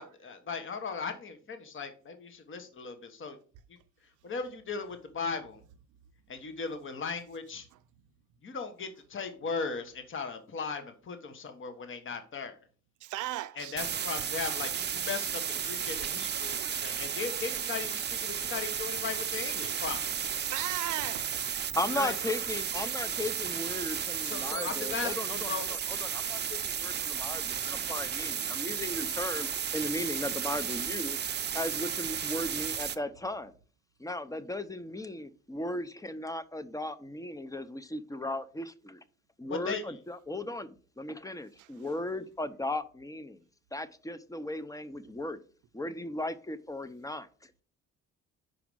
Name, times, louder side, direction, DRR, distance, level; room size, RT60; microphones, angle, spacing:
voice 1, 0.0-3.4 4.2-5.6 6.3-7.7 8.4-12.6 13.6-20.3 21.9-22.3 24.2-25.8 39.4-39.8, left 5 dB, 40° left, 1.2 m, -37 dB
voice 2, 13.0-13.8 20.4-21.5 41.6-41.9, right 15 dB, 80° right, 0.6 m, -37 dB
sound 1, 13.8-33.0, right 8 dB, 35° right, 0.6 m, -33 dB
voice 3, 21.8-31.2 31.5-33.5 34.0-39.0 39.4-43.4 43.7-45.4 45.7-47.5, left 1 dB, 10° left, 0.6 m, -36 dB
5.2 x 4.8 x 6.1 m
cardioid pair, 90°, 30 cm